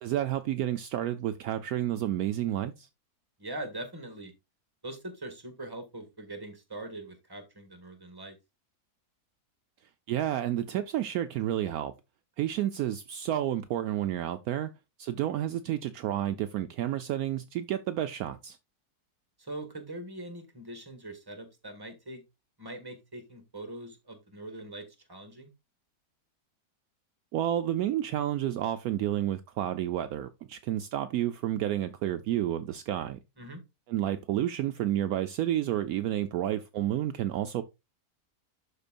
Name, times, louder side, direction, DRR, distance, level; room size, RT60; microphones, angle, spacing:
voice 1, 0.0-2.9 10.1-11.9 12.4-14.7 15.0-18.6 27.3-33.2 33.9-37.6, right 12 dB, 70° right, 1.0 m, -30 dB
voice 2, 3.4-4.3 4.8-8.4 19.4-22.2 22.6-25.5 33.4-33.6, right 1 dB, 15° right, 1.6 m, -42 dB
12.0 x 4.5 x 2.5 m
omnidirectional pair, 1.7 m